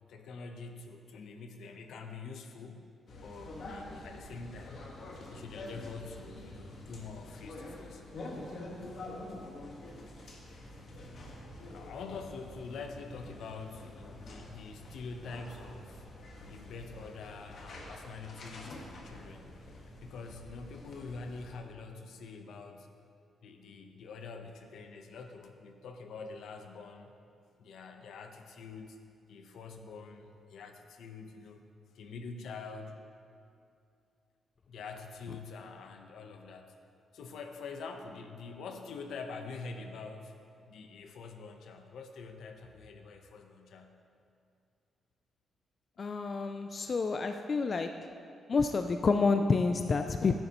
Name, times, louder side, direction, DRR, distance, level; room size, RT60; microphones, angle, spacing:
voice 1, 0.1-2.9 3.2-4.8 5.3-8.0 11.7-16.1 16.5-19.7 20.0-22.9 23.4-27.1 27.6-29.0 29.3-31.6 31.9-33.0 34.7-36.7 37.1-40.3 40.7-43.9, left 4 dB, 75° left, 5 dB, 0.9 m, -45 dB
sound 1, 3.1-21.6, left 1 dB, 50° left, 1.4 m, -47 dB
voice 2, 46.0-47.9 48.5-50.4, left 4 dB, 35° left, 6 dB, 0.3 m, -28 dB
14.0 x 10.5 x 3.0 m, 2.5 s
wide cardioid pair, 165°, 0 cm